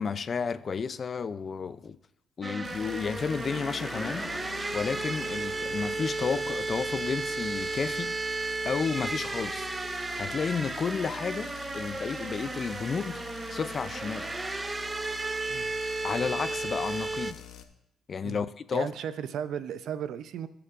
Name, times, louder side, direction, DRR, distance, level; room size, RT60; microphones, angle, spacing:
voice 1, 0.0-2.0 2.4-9.7 10.2-13.2 13.5-14.3 16.0-17.4 18.1-18.9, left 5 dB, 45° left, 0.4 m, -32 dB
sound 1, 2.4-17.3, right 3 dB, 20° right, 0.4 m, -34 dB
sound 2, 2.6-17.6, left 9 dB, 80° left, 0.8 m, -46 dB
sound 3, 3.5-8.4, left 2 dB, 15° left, 1.1 m, -45 dB
voice 2, 18.7-20.5, right 8 dB, 75° right, 0.5 m, -35 dB
19.0 x 6.9 x 2.5 m
cardioid pair, 90°, 0 cm